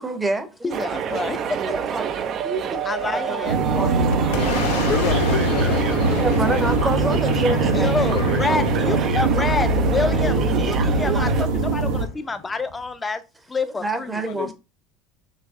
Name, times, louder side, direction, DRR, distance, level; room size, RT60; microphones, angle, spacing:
voice 1, 0.0-0.8 1.1-2.1 2.4-2.8 3.1-4.1 6.2-9.0 10.2-10.6 13.7-14.5, right 2 dB, 15° right, 0.8 m, -28 dB
voice 2, 0.6-1.4 2.9-3.6 3.9-4.0 4.4-4.8 7.7-13.2 13.5-14.2, left 3 dB, 20° left, 0.6 m, -28 dB
sound 1, 0.7-11.5, right 8 dB, 45° right, 0.5 m, -28 dB
sound 2, 3.4-12.0, right 3 dB, 80° right, 0.8 m, -22 dB
Boom, 3.5-12.9, left 4 dB, 90° left, 0.9 m, -30 dB
voice 3, 4.7-6.7 14.2-14.5, left 10 dB, 60° left, 0.5 m, -30 dB
4.1 x 3.1 x 3.5 m
supercardioid pair, 95°, 0 cm